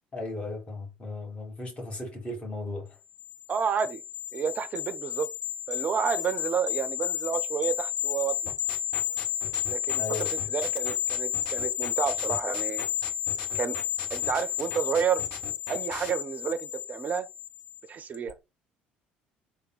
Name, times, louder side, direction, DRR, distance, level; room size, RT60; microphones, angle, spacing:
voice 1, 0.1-3.0 10.0-10.5, left 2 dB, 25° left, 1.5 m, -36 dB
sound 1, 3.2-17.8 18.1-18.3, left 11 dB, 80° left, 0.4 m, -32 dB
voice 2, 3.5-4.0 4.3-5.3 5.7-8.5 9.6-12.9 13.5-13.8 14.1-15.3 15.7-17.3 17.9-18.3, right 7 dB, 35° right, 0.5 m, -30 dB
sound 2, 8.5-16.1, left 3 dB, 60° left, 1.2 m, -40 dB
3.5 x 2.2 x 4.0 m
figure-of-eight pair, 55°, 5 cm